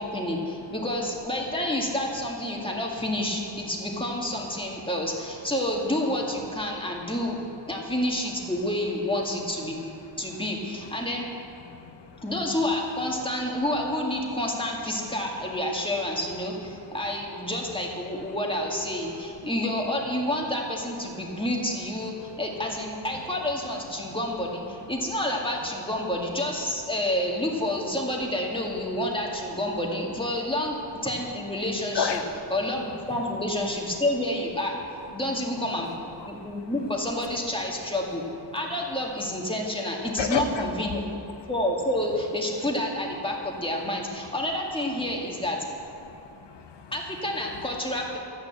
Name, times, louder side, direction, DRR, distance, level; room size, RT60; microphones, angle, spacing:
voice 1, 0.0-7.4 7.7-9.8 10.2-11.3 12.2-32.2 32.5-34.8 35.1-38.2 38.5-41.0 41.5-45.6 46.9-48.2, left 1 dB, 10° left, -2 dB, 1.9 m, -29 dB
voice 2, 10.0-10.4 11.0-11.1 11.6-12.3 16.7-17.0 18.3-18.4 19.4-19.5 22.2-22.7 24.0-24.2 31.9-32.4 35.3-35.4 36.2-36.7 38.5-38.6 40.2-40.7 41.4-41.5 45.1-45.2 46.0-47.0 47.5-47.6, left 6 dB, 90° left, 6 dB, 1.1 m, -34 dB
13.0 x 9.3 x 7.9 m, 2.6 s
wide cardioid pair, 135°, 41 cm